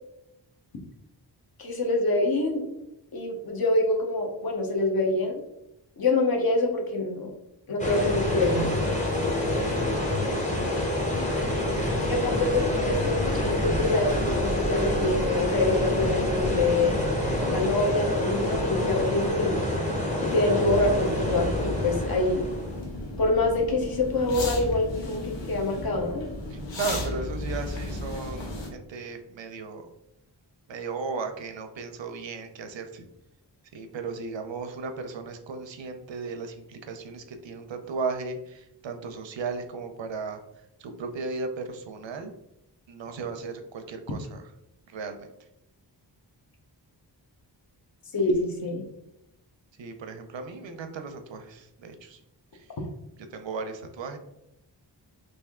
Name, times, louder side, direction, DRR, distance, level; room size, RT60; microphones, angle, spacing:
voice 1, 1.6-2.8 3.1-5.4 6.0-7.3 7.7-8.8 12.1-17.0 17.5-19.6 20.2-22.5 23.2-26.2 48.1-48.8, left 2 dB, 55° left, 1 dB, 0.8 m, -26 dB
sound 1, 7.8-22.8, left 1 dB, 15° left, 0.8 m, -27 dB
voice 2, 9.7-10.2 11.7-12.5 26.5-29.9 30.7-33.0 33.7-40.4 40.8-42.3 42.9-44.5 44.9-45.3 49.8-52.2 52.5-52.7 53.3-54.2, right 4 dB, 90° right, 7 dB, 0.6 m, -36 dB
sound 2, 12.1-22.6, right 2 dB, 10° right, 0.4 m, -37 dB
sound 3, 20.6-28.7, left 2 dB, 90° left, 0.9 m, -34 dB
3.3 x 2.6 x 3.5 m, 0.84 s
wide cardioid pair, 115°, 43 cm